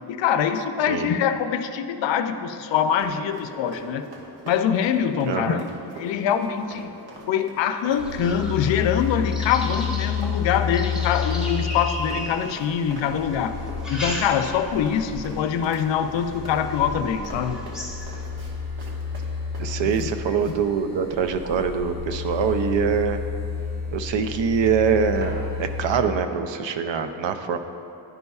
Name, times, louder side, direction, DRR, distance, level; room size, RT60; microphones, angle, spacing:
voice 1, 0.1-4.0 4.4-5.7 6.0-6.9 7.3-13.6 13.9-17.6 20.0-20.1, left 8 dB, 80° left, 9 dB, 0.5 m, -24 dB
Run, 2.7-20.1 20.4-20.6, right 1 dB, 60° right, 1.3 m, -42 dB
voice 2, 5.3-5.6 19.6-23.2 23.9-27.6, right 6 dB, 90° right, 8 dB, 0.6 m, -24 dB
sound 1, 8.0-13.0 13.6-14.8 15.2-15.6 16.2-16.3 16.7-16.8 17.2-18.3, left 1 dB, ahead, 0.9 m, -36 dB
sound 2, 8.0-26.0, left 6 dB, 20° right, 1.3 m, -31 dB
11.0 x 5.3 x 2.3 m, 2.7 s
wide cardioid pair, 125°, 43 cm